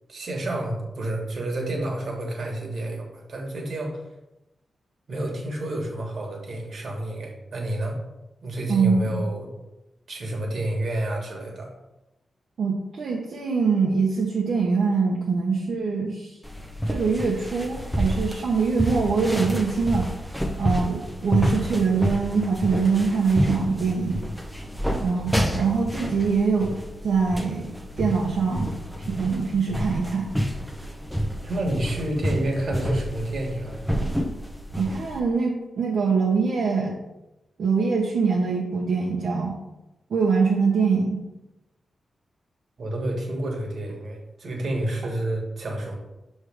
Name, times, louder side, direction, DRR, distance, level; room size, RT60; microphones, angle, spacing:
voice 1, 0.1-4.0 5.1-8.0 8.4-9.5 10.1-11.7 31.4-33.8 42.8-46.0, right 1 dB, 60° right, 0 dB, 1.5 m, -29 dB
voice 2, 8.7-9.3 12.6-16.3 16.9-20.1 20.6-24.2 25.0-26.8 27.0-28.7 29.2-30.3 34.8-37.0 37.6-39.6 40.1-41.2, right 5 dB, 75° right, -3 dB, 0.8 m, -23 dB
sound 1, 16.4-35.2, equal, ahead, 0.7 m, -29 dB
6.2 x 3.2 x 5.0 m, 0.96 s
wide cardioid pair, 120°, 0 cm